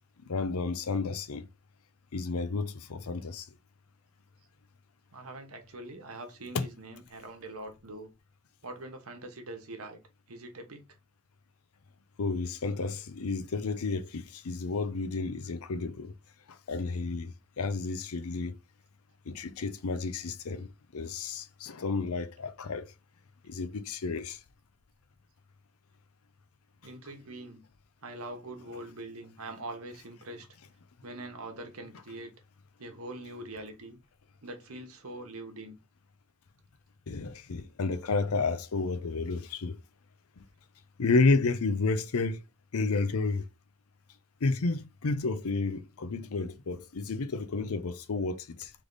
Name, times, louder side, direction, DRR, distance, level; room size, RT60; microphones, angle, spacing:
voice 1, 0.2-1.5 2.1-3.5 6.5-6.7 12.2-16.1 16.5-18.5 19.3-22.9 23.4-24.4 37.1-39.8 40.4-40.5 41.0-42.4 42.7-43.4 44.4-48.7, left 3 dB, 80° left, 0.6 m, -31 dB
voice 2, 5.1-8.1 8.6-10.0 10.3-10.8 26.8-27.6 28.0-30.5 31.0-32.3 32.8-34.0 34.4-35.8, right 2 dB, 75° right, 1.1 m, -43 dB
3.4 x 3.3 x 3.9 m
head